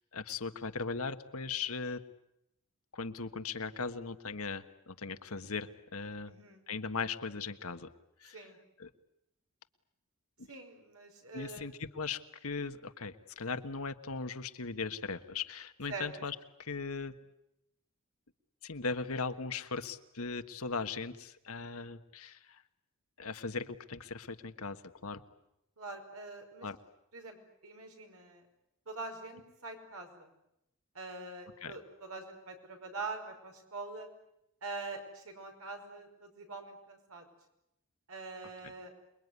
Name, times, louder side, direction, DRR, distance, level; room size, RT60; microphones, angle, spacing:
voice 1, 0.1-2.0 2.9-6.3 6.7-7.9 8.2-8.4 8.8-8.9 10.4-10.5 11.3-17.1 18.6-22.6 23.2-25.2 26.6-26.8 31.6-31.8, left 4 dB, 75° left, 9 dB, 1.4 m, -38 dB
voice 2, 6.2-6.6 8.3-8.6 10.5-11.7 15.9-16.1 25.8-26.7 27.1-27.4 27.6-28.4 28.9-30.3 30.9-34.1 34.6-37.3 38.1-38.9, right 3 dB, 75° right, 4 dB, 5.5 m, -44 dB
28.0 x 22.0 x 9.6 m, 0.83 s
head